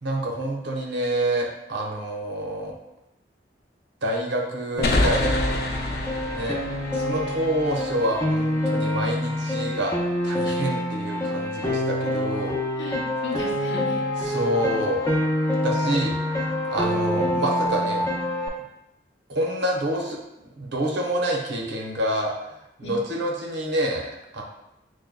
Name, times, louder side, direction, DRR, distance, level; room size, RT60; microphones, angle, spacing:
voice 1, 0.0-2.7 4.0-5.4 6.3-6.6 6.9-9.9 10.2-12.6 14.2-15.0 15.6-18.4 19.3-20.2 20.6-24.4, right 1 dB, 85° right, -1 dB, 0.8 m, -27 dB
sound 1, 4.8-8.3, left 2 dB, 60° left, 0.5 m, -27 dB
Piano, 4.8-18.5, left 1 dB, 15° left, 0.6 m, -26 dB
voice 2, 12.7-14.0 16.9-17.0 22.8-23.0, left 2 dB, 90° left, -1 dB, 0.8 m, -36 dB
6.4 x 2.2 x 2.2 m, 0.86 s
head